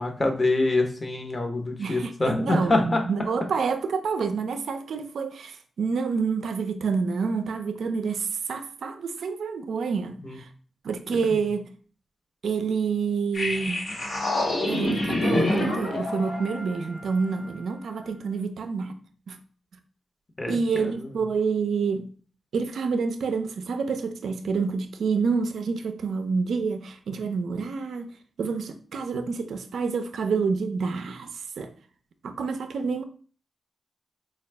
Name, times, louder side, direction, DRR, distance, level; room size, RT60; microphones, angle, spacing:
voice 1, 0.0-3.0 10.2-10.4 20.4-20.6, left 2 dB, 40° left, 0.9 m, -25 dB
voice 2, 1.8-10.5 10.8-11.7 12.4-13.9 14.6-19.0 19.3-19.4 20.5-22.1 22.5-28.1 28.4-31.7 32.2-33.0, right 5 dB, 85° right, 0.4 m, -28 dB
sound 1, 13.3-17.6, left 1 dB, 70° left, 1.1 m, -27 dB
4.0 x 2.3 x 3.3 m
cardioid pair, 50°, 0 cm